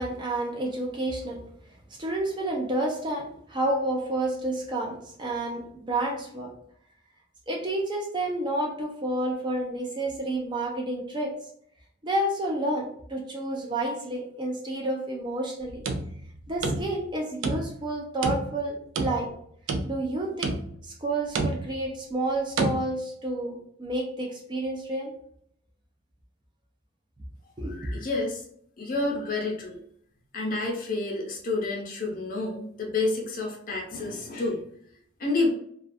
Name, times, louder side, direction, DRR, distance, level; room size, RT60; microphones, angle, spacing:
voice 1, 0.0-1.4 2.0-6.5 7.5-11.3 12.0-15.8 16.5-19.3 19.9-25.1 27.6-27.9, right 1 dB, 25° right, 0 dB, 0.4 m, -30 dB
sound 1, 15.6-17.1 17.4-17.9 18.2-19.3 19.7-20.1 20.4-20.9 21.4-21.9 22.6-22.8, right 3 dB, 90° right, 0.4 m, -29 dB
voice 2, 27.7-28.4 28.8-29.8 30.3-34.6 35.2-35.5, left 2 dB, 45° left, 0 dB, 0.6 m, -29 dB
2.3 x 2.3 x 2.5 m, 0.65 s
head